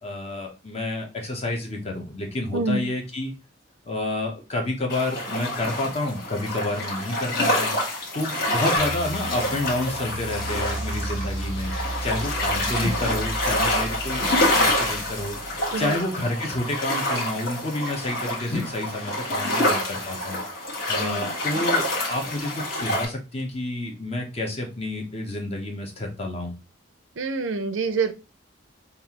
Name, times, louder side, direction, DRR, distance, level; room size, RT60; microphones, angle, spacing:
voice 1, 0.0-3.3 3.8-7.7 8.1-11.7 12.0-20.4 20.9-26.5, left 1 dB, 30° left, 2 dB, 0.7 m, -29 dB
sound 1, 4.9-23.1, left 1 dB, 50° left, 1.3 m, -27 dB
sound 2, 8.8-15.9, right 1 dB, 85° left, 1.4 m, -34 dB
voice 2, 21.0-21.3 27.2-28.1, right 4 dB, 70° right, 10 dB, 0.5 m, -26 dB
5.3 x 2.4 x 2.9 m, 0.30 s
head